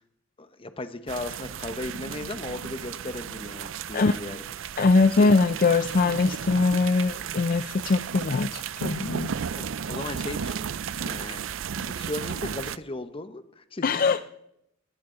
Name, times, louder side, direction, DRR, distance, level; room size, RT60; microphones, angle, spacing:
voice 1, 0.4-4.4 5.2-5.3 9.5-10.7 11.0-11.4 11.7-14.2, left 2 dB, 30° left, 10 dB, 0.9 m, -36 dB
sound 1, 1.1-12.8, right 7 dB, 75° right, 0.5 m, -34 dB
voice 2, 4.8-9.3 13.8-14.2, left 3 dB, 45° left, 12 dB, 0.4 m, -22 dB
19.0 x 15.5 x 3.9 m, 0.81 s
head